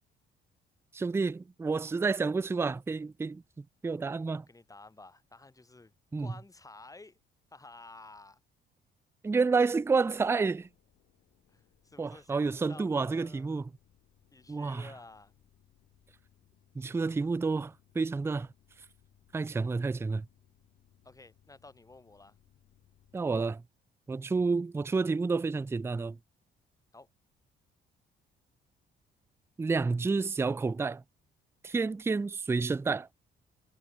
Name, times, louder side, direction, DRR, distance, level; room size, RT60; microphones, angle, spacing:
voice 1, 0.9-4.4 6.1-6.3 9.2-10.7 12.0-13.7 14.5-14.9 16.8-18.5 19.3-20.3 23.1-23.6 24.1-26.2 29.6-31.0 31.6-33.1, right 4 dB, 10° right, 0.4 m, -30 dB
voice 2, 4.5-5.9 6.2-7.2 7.5-8.4 11.5-13.6 14.3-15.3 21.0-22.4 26.9-27.1, left 2 dB, 15° left, 2.3 m, -52 dB
sound 1, 9.8-23.3, left 12 dB, 75° left, 4.1 m, -67 dB
cardioid pair, 90°, 20 cm